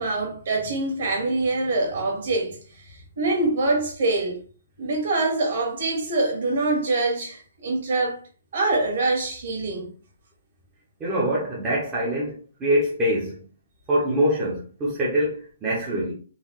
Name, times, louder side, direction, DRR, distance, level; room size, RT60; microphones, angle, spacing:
voice 1, 0.0-4.4 4.8-8.2 8.5-9.9, right 2 dB, 50° right, 1.4 m, -25 dB
voice 2, 11.0-13.4 13.9-16.1, equal, 10° right, 0.6 m, -24 dB
3.8 x 2.3 x 3.0 m
hypercardioid pair, 175°, 0 cm